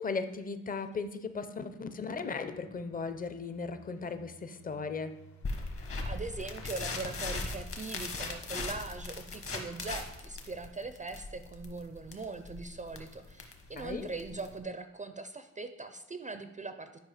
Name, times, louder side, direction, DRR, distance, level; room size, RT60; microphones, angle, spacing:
voice 1, 0.0-5.1 13.8-14.1, left 4 dB, 30° left, 10 dB, 0.6 m, -37 dB
Engine, 1.3-9.3, left 4 dB, 70° left, 1.0 m, -57 dB
sound 1, 5.4-14.6, left 3 dB, 50° left, 1.2 m, -39 dB
voice 2, 6.1-17.0, right 3 dB, 25° right, 9 dB, 0.4 m, -41 dB
10.5 x 5.1 x 4.9 m, 0.99 s
wide cardioid pair, 155°, 29 cm